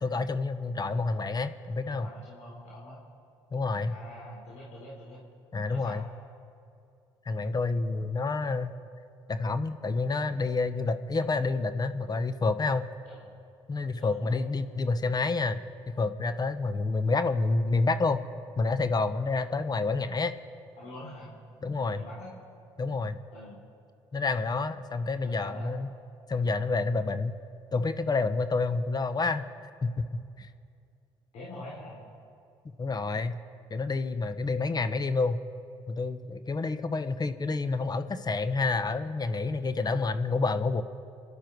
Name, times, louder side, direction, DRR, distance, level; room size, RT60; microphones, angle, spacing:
voice 1, 0.0-2.1 3.5-4.0 5.5-6.1 7.3-8.8 9.3-12.9 13.7-15.6 15.9-18.2 18.6-20.3 21.6-22.0 22.8-23.2 24.1-25.9 26.3-27.4 27.7-29.5 29.8-30.5 32.8-33.4 33.7-35.4 35.9-40.8, left 3 dB, 35° left, 11 dB, 1.0 m, -28 dB
voice 2, 1.9-3.0 3.9-5.2 5.7-6.1 13.1-13.4 14.0-14.4 20.8-21.3 21.9-22.4 23.3-23.6 25.2-25.7 31.3-32.0, left 1 dB, 75° left, -5 dB, 3.7 m, -45 dB
26.0 x 11.5 x 4.7 m, 2.5 s
supercardioid pair, 65°, 12 cm